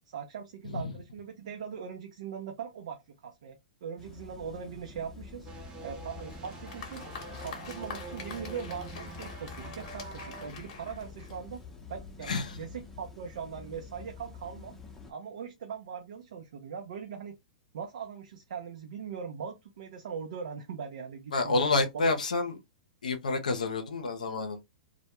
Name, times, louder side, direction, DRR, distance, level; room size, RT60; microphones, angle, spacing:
voice 1, 0.1-5.5 5.8-7.0 7.4-11.6 11.9-14.8 15.1-17.4 17.7-21.6 21.9-22.1, right 7 dB, 65° right, 0.5 m, -40 dB
sound 1, 4.0-15.1, left 5 dB, 10° left, 0.6 m, -48 dB
sound 2, 5.5-10.5, right 4 dB, 25° right, 0.7 m, -46 dB
Applause, 6.2-11.7, left 6 dB, 55° left, 0.8 m, -46 dB
voice 2, 12.3-12.6 21.3-22.6 23.0-24.6, left 3 dB, 90° left, 0.5 m, -29 dB
2.1 x 2.1 x 2.9 m
hypercardioid pair, 120°, 4 cm